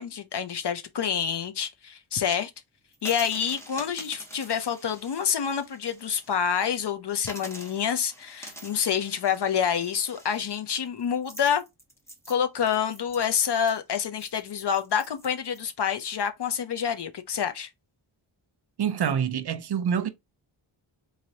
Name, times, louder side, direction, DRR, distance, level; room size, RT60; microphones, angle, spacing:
voice 1, 0.0-2.5 3.0-11.6 12.3-17.7, left 8 dB, 55° left, 0.6 m, -27 dB
sound 1, 2.9-6.4 6.7-6.8 7.2-15.6, right 1 dB, 5° left, 1.0 m, -46 dB
voice 2, 18.8-20.1, right 8 dB, 55° right, 0.6 m, -26 dB
3.9 x 3.2 x 2.7 m
wide cardioid pair, 165°, 49 cm